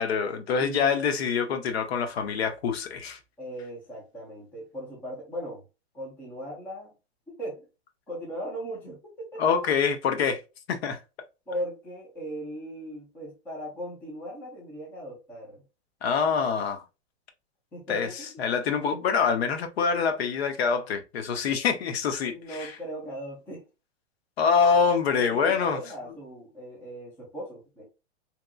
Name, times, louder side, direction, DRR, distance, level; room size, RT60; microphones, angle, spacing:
voice 1, 0.0-3.2 9.4-10.4 10.7-11.0 16.0-16.8 17.9-22.7 24.4-25.8, left 6 dB, 65° left, 0.7 m, -25 dB
voice 2, 0.6-1.1 3.4-5.6 5.9-6.9 7.3-7.7 8.1-9.6 11.5-15.6 17.7-18.4 18.9-19.0 22.3-23.6 25.2-27.8, equal, 5° left, 0.4 m, -38 dB
2.8 x 2.3 x 2.2 m
hypercardioid pair, 155°, 34 cm